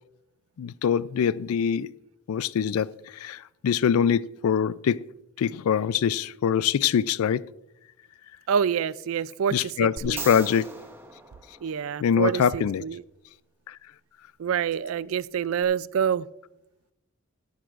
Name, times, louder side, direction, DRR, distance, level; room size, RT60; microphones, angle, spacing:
voice 1, 0.6-1.9 2.3-5.0 5.4-7.4 9.5-10.6 12.0-12.8, left 8 dB, 85° left, 0.3 m, -24 dB
voice 2, 8.5-10.3 11.6-13.0 14.4-16.3, right 7 dB, 75° right, 0.4 m, -27 dB
sound 1, 10.0-12.2 15.6-15.7, right 2 dB, 10° right, 1.4 m, -39 dB
14.5 x 14.0 x 2.5 m
head